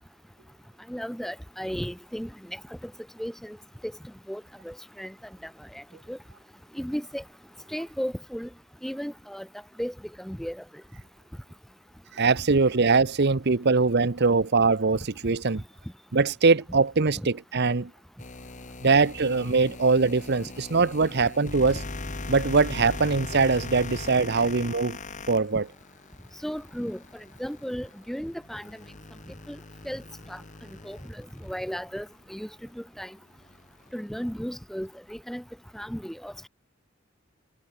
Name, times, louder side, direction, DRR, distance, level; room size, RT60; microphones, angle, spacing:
voice 1, 0.9-2.9 3.2-3.6 3.8-3.9 4.3-5.1 5.4-6.2 6.7-7.2 7.7-8.5 8.8-9.5 9.8-10.6 17.1-17.3 26.4-27.0 27.4-28.8 29.5-29.6 29.8-30.0 30.3-30.4 30.8-32.5 32.7-33.2 33.9-35.4 35.7-36.5, equal, ahead, 1.5 m, -35 dB
voice 2, 12.1-15.6 16.1-17.9 18.8-21.8 22.3-25.0 25.3-25.6, right 4 dB, 55° right, 0.9 m, -22 dB
sound 1, 18.2-32.3 32.7-32.8 33.4-34.6, left 2 dB, 35° left, 1.7 m, -40 dB
head